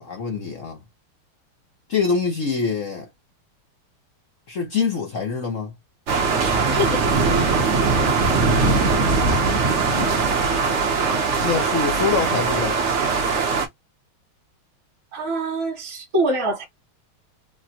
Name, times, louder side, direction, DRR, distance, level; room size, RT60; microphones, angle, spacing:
voice 1, 0.0-0.8 1.9-3.1 4.5-5.7 9.9-10.1 11.4-12.8, left 5 dB, 60° left, 0.8 m, -24 dB
sound 1, 6.1-13.7, right 4 dB, 80° right, 0.6 m, -20 dB
voice 2, 6.7-7.5 15.1-16.7, right 1 dB, 45° right, 1.4 m, -25 dB
3.6 x 2.0 x 2.8 m
omnidirectional pair, 2.4 m